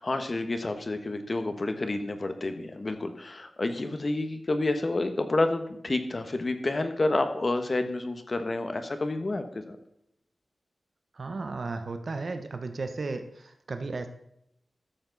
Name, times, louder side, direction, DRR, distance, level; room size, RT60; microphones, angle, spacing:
voice 1, 0.0-9.8, left 2 dB, 40° left, 8 dB, 1.3 m, -29 dB
voice 2, 11.1-14.1, right 3 dB, 55° right, 7 dB, 1.1 m, -34 dB
13.0 x 7.1 x 4.1 m, 0.77 s
wide cardioid pair, 100°, 0 cm